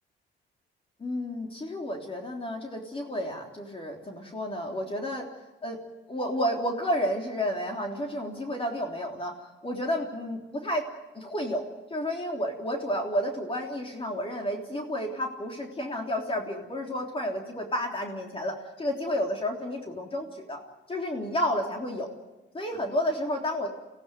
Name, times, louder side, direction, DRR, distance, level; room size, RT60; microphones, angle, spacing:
voice 1, 1.0-5.3 5.6-5.8 6.1-9.4 9.6-10.9 11.1-11.7 11.9-20.6 20.9-22.1 22.5-23.8, equal, 30° left, 1 dB, 3.5 m, -31 dB
23.5 x 16.5 x 9.3 m, 1.1 s
cardioid pair, 90°, 20 cm